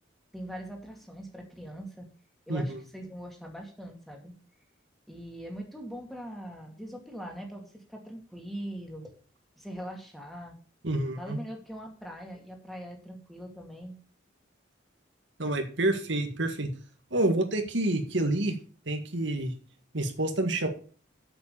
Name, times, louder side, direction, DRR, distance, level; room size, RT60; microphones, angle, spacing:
voice 1, 0.3-2.1 2.5-4.3 5.1-9.1 9.6-10.6 11.2-14.0, equal, ahead, 1 dB, 2.4 m, -41 dB
voice 2, 10.8-11.4 15.4-16.7 17.1-18.5 18.8-19.5 19.9-20.7, right 1 dB, 70° right, 5 dB, 1.8 m, -28 dB
8.1 x 7.7 x 7.0 m, 0.40 s
head